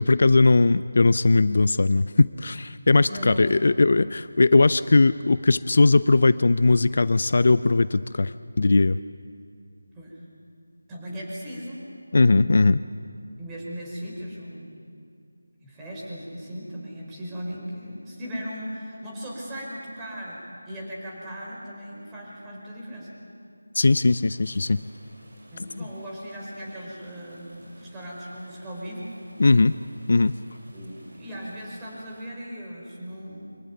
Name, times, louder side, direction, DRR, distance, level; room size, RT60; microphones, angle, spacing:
voice 1, 0.0-9.0 12.1-12.8 23.7-24.8 29.4-29.8 30.1-30.3, left 3 dB, 55° left, 15 dB, 0.5 m, -19 dB
voice 2, 3.1-3.5 9.9-10.2 10.9-11.8 13.4-14.7 15.6-23.2 25.5-29.1 30.7-33.6, equal, 10° right, -4 dB, 4.7 m, -37 dB
sound 1, 23.9-32.3, equal, 60° right, 7.5 m, -54 dB
25.0 x 14.5 x 9.4 m, 2.4 s
figure-of-eight pair, 165°, 0 cm